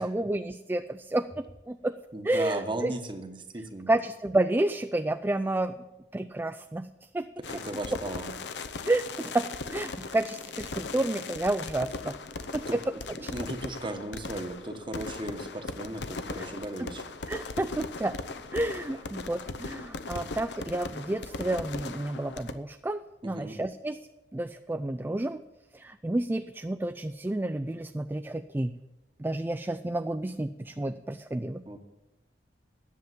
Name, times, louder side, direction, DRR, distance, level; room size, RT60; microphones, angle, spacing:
voice 1, 0.0-1.9 2.2-2.9 3.9-5.7 6.1-6.9 7.1-7.3 8.9-12.1 12.5-12.8 13.2-13.3 16.4-16.5 17.3-18.1 18.5-24.0 24.3-25.4 25.7-28.8 29.2-31.6, right 1 dB, 10° right, 9 dB, 0.3 m, -30 dB
voice 2, 2.1-3.9 7.5-8.3 12.7-17.0 23.2-23.6 31.7-31.8, right 2 dB, 30° right, 7 dB, 1.1 m, -36 dB
sound 1, 7.4-22.5, left 3 dB, 75° left, 0.8 m, -39 dB
10.5 x 7.3 x 9.3 m, 1.0 s
head